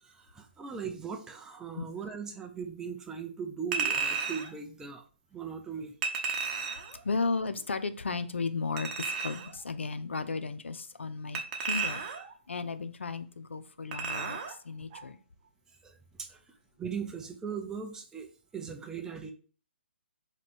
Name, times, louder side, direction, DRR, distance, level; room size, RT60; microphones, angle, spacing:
voice 1, 0.0-5.0 5.3-5.9 15.8-16.4 16.8-18.3 18.5-19.3, right 6 dB, 10° right, 0.4 m, -39 dB
Chink clink, 3.7-4.5 6.0-6.9 8.8-9.5 11.3-12.3 13.9-14.5 14.9-15.0, right 5 dB, 40° right, 0.8 m, -33 dB
voice 2, 7.0-12.0 12.5-15.2, left 4 dB, 85° left, 0.4 m, -34 dB
3.2 x 2.8 x 4.2 m
hypercardioid pair, 140°, 6 cm